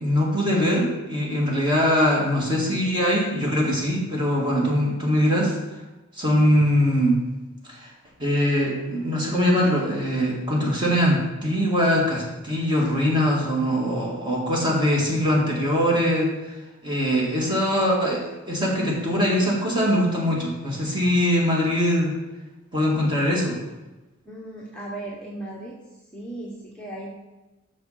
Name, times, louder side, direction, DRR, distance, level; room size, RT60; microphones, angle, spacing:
voice 1, 0.0-5.5 6.2-7.2 7.6-7.9 8.2-16.3 16.8-22.1 22.7-23.6, equal, 25° right, -3 dB, 1.9 m, -22 dB
voice 2, 24.2-25.8 26.1-27.1, right 1 dB, 5° left, -5 dB, 0.9 m, -36 dB
6.4 x 5.8 x 5.6 m, 1.1 s
head